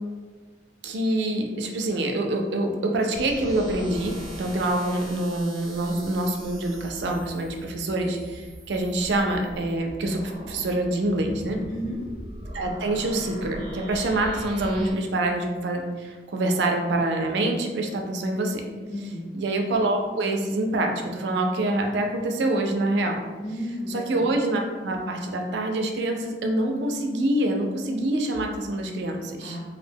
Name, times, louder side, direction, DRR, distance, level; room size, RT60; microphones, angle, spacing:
voice 1, 0.8-11.6 12.5-18.6 19.4-23.3 23.9-29.6, right 1 dB, 70° right, 3 dB, 0.4 m, -26 dB
sound 1, 3.1-14.9, equal, 25° right, 0.6 m, -40 dB
voice 2, 11.7-12.0 18.9-19.3 23.4-24.2 29.4-29.6, equal, 45° left, -2 dB, 0.6 m, -33 dB
2.5 x 2.1 x 3.3 m, 1.4 s
head